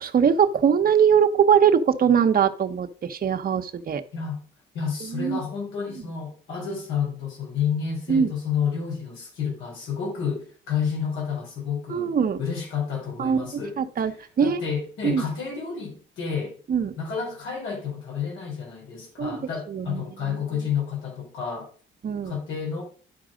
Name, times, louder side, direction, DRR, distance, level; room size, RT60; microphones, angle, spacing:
voice 1, 0.0-4.0 5.0-5.4 8.1-8.3 11.9-12.4 13.2-14.6 15.0-15.2 16.7-16.9 19.2-19.4 19.7-20.4 22.0-22.4, right 7 dB, 50° right, 1.0 m, -22 dB
voice 2, 4.1-4.4 4.7-13.8 14.4-16.6 17.0-21.7 22.2-22.8, left 6 dB, 85° left, 4.5 m, -30 dB
11.5 x 4.7 x 5.1 m
cardioid pair, 90°, 20 cm